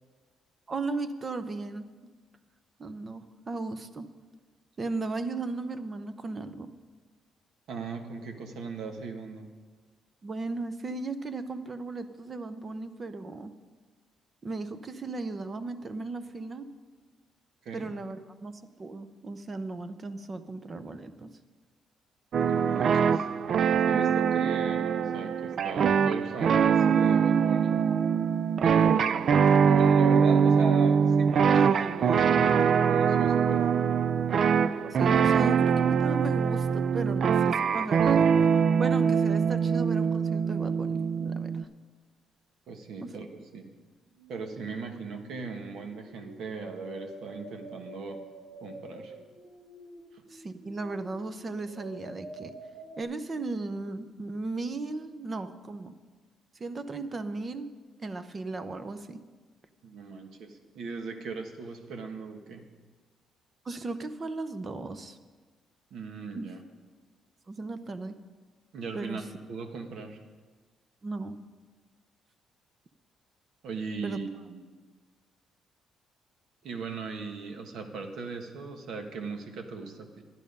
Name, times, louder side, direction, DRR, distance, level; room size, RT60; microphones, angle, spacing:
voice 1, 0.7-1.9 2.8-4.1 4.8-6.7 10.2-13.5 14.4-16.7 17.7-21.3 34.9-38.3 38.8-41.6 43.0-43.1 50.3-52.5 53.0-56.0 56.5-57.7 58.0-59.2 63.6-65.2 66.3-66.5 67.5-68.2 68.9-69.2 71.0-71.4 74.0-74.2, right 3 dB, 30° right, 11 dB, 0.7 m, -36 dB
voice 2, 7.7-9.5 17.6-17.9 22.3-23.3 23.8-27.8 28.6-33.9 42.7-43.3 43.5-43.7 44.3-48.2 48.6-49.1 50.1-50.2 59.8-62.6 65.9-66.6 68.7-69.2 69.5-70.2 73.6-74.6 76.6-80.2, right 4 dB, 65° right, 5 dB, 1.4 m, -38 dB
sound 1, 22.3-41.6, right 6 dB, 50° right, 0.3 m, -23 dB
sound 2, 45.7-53.0, right 1 dB, 90° right, 1.7 m, -48 dB
11.5 x 10.5 x 5.4 m, 1.4 s
cardioid pair, 140°, 0 cm